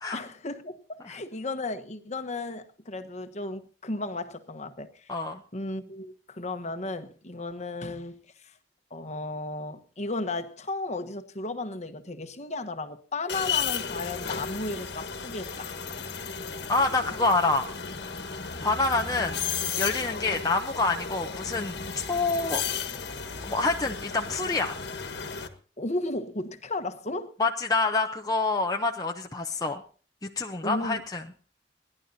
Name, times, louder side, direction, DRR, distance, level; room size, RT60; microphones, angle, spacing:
voice 1, 0.1-5.2 5.5-8.5 8.9-15.7 25.8-27.3 30.6-31.0, left 2 dB, 40° left, 1.2 m, -34 dB
sound 1, 13.3-25.5, left 6 dB, 70° left, 1.5 m, -34 dB
voice 2, 16.7-17.7 18.6-19.4 19.8-22.6 23.5-24.8 27.4-29.8 30.2-31.2, left 3 dB, 20° left, 0.8 m, -27 dB
30.0 x 11.0 x 2.8 m
head